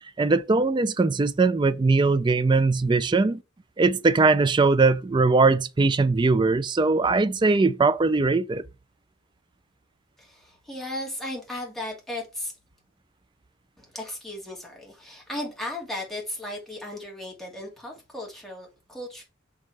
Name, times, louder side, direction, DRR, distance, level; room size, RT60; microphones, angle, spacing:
voice 1, 0.2-3.4 3.8-8.6, right 3 dB, 20° right, 0.3 m, -21 dB
voice 2, 10.2-12.5 13.8-19.2, left 1 dB, ahead, 2.3 m, -36 dB
6.4 x 3.6 x 4.7 m
head